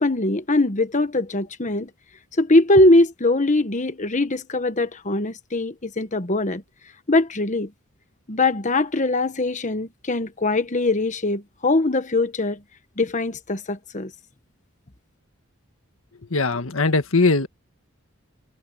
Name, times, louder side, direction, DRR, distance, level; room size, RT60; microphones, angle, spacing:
voice 1, 0.0-1.9 2.4-6.6 7.1-7.7 8.3-12.6 13.0-14.1, left 2 dB, 35° left, 1.4 m, -21 dB
voice 2, 16.3-17.5, left 3 dB, 80° left, 1.7 m, -20 dB
head